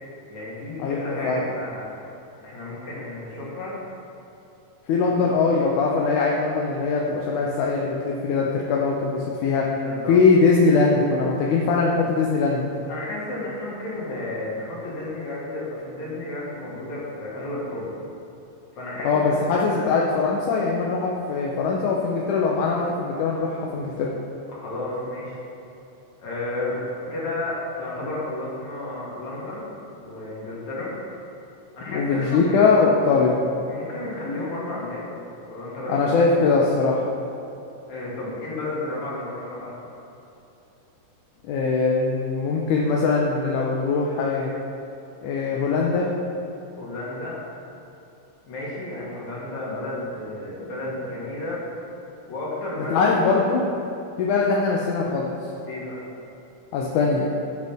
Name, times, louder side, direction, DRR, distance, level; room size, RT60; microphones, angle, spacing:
voice 1, 0.3-1.9 2.4-3.8 9.8-10.2 12.9-17.9 18.8-19.9 24.5-25.4 26.2-26.8 27.1-29.7 30.0-30.9 31.7-32.7 33.7-35.1 35.5-36.1 37.9-39.7 46.8-47.4 48.5-51.6 52.3-53.1 55.7-56.0, left 2 dB, 65° left, -6 dB, 3.6 m, -32 dB
voice 2, 0.8-1.5 4.9-9.8 10.1-12.7 19.0-24.1 31.9-33.4 35.9-37.1 41.5-44.5 45.2-46.1 52.9-53.6 54.2-55.3 56.7-57.3, left 4 dB, 85° left, -2 dB, 2.3 m, -21 dB
14.5 x 8.0 x 3.5 m, 2.8 s
omnidirectional pair, 3.5 m